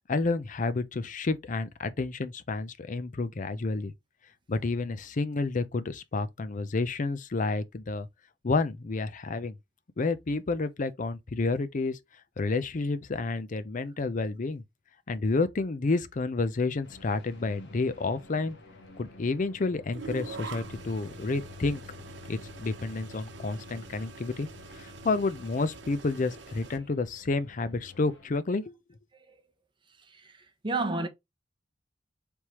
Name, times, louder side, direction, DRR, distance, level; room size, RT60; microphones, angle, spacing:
voice 1, 0.1-3.9 4.5-8.1 8.4-9.5 10.0-12.0 12.4-14.6 15.1-18.5 19.0-21.8 22.3-24.5 24.8-28.7, left 3 dB, 45° left, 0.5 m, -30 dB
sound 1, 16.8-28.3, left 3 dB, 75° left, 1.3 m, -50 dB
sound 2, 19.9-26.8, right 4 dB, 80° right, 0.9 m, -45 dB
voice 2, 30.0-31.1, right 3 dB, 25° right, 0.9 m, -32 dB
4.6 x 3.5 x 2.9 m
head